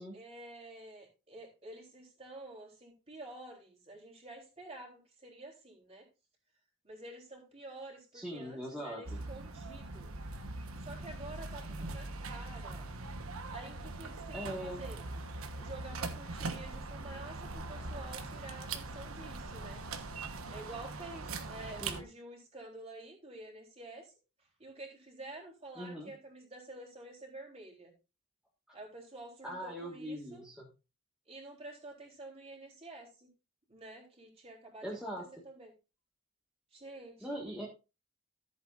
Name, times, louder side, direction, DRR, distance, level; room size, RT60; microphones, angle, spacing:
voice 1, 0.1-6.1 6.8-10.1 10.8-12.9 13.5-15.0 15.6-19.8 20.5-27.9 28.7-30.4 31.3-33.3 33.7-34.9 35.4-35.7 36.7-37.4, right 2 dB, 30° right, 0 dB, 3.6 m, -49 dB
voice 2, 8.1-9.2 14.3-14.8 21.8-22.0 25.8-26.1 28.7-28.8 29.4-30.7 34.8-35.3 37.2-37.7, equal, 5° right, -4 dB, 1.7 m, -41 dB
sound 1, 9.0-22.0, right 3 dB, 85° right, 1.2 m, -41 dB
14.0 x 8.1 x 2.6 m, 0.29 s
head